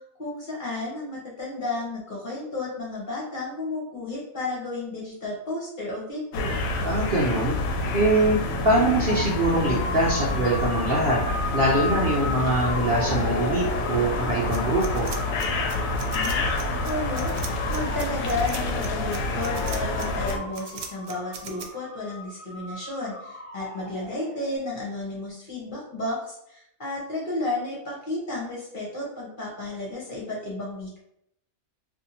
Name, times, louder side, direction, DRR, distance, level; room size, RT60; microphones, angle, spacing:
voice 1, 0.2-6.6 16.1-17.4 17.7-31.0, left 2 dB, 40° left, -5 dB, 0.9 m, -32 dB
sound 1, 6.3-20.4, left 2 dB, 75° left, 1.0 m, -28 dB
voice 2, 6.8-7.6 7.9-11.2 11.5-15.1, right 1 dB, 55° right, -4 dB, 0.7 m, -23 dB
sound 2, 9.1-24.5, left 1 dB, 55° left, 0.3 m, -36 dB
sound 3, 14.5-21.7, right 6 dB, 80° right, 1.0 m, -39 dB
2.7 x 2.5 x 4.1 m, 0.78 s
omnidirectional pair, 1.5 m